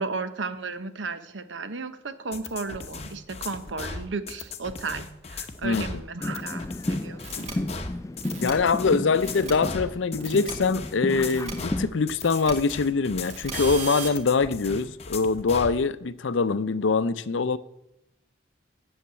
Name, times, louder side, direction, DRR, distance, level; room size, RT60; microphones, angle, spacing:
voice 1, 0.0-7.5, right 4 dB, 80° right, 0.9 m, -34 dB
sound 1, 2.3-15.8, left 4 dB, 35° left, 0.8 m, -37 dB
voice 2, 5.6-6.0 8.4-17.6, left 4 dB, 85° left, 0.5 m, -24 dB
sound 2, 6.2-11.9, left 1 dB, 15° left, 0.3 m, -33 dB
sound 3, 7.2-7.5 8.2-8.5 9.2-9.5 10.2-10.5 11.2-11.5 12.2-12.5 13.2-14.1, right 5 dB, 35° right, 1.5 m, -36 dB
8.4 x 7.2 x 8.7 m
head